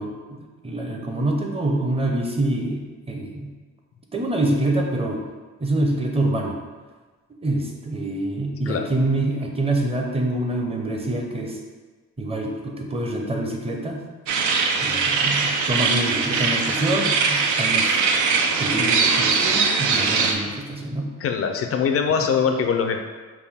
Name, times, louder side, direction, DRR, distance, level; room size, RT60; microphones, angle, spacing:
voice 1, 0.0-3.5 4.1-5.2 5.6-6.6 7.4-11.6 12.2-14.0 14.8-18.0 18.6-21.1 22.2-22.3, right 1 dB, 20° right, 1 dB, 0.7 m, -26 dB
sound 1, 14.3-20.3, right 4 dB, 75° right, 0.6 m, -21 dB
voice 2, 21.2-23.1, left 6 dB, 50° left, 5 dB, 0.5 m, -22 dB
5.6 x 2.2 x 3.5 m, 1.3 s
cardioid pair, 90°, 30 cm